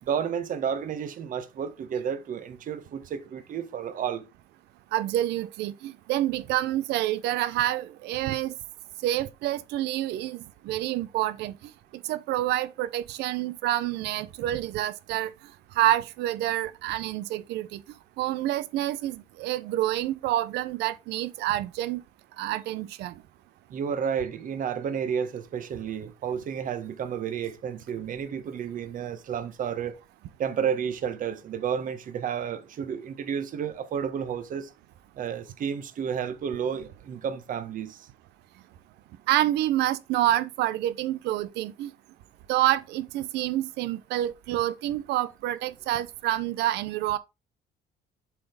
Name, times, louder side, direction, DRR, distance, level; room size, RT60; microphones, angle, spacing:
voice 1, 0.0-4.2 23.7-30.0 30.4-34.7 35.2-38.1, right 7 dB, 50° right, 1.4 m, -31 dB
voice 2, 4.9-8.5 9.0-11.6 12.1-15.3 15.8-17.8 18.2-22.0 22.4-23.1 39.3-41.9 42.5-47.2, right 14 dB, 85° right, 0.8 m, -28 dB
7.5 x 4.0 x 5.1 m
cardioid pair, 110°, 17 cm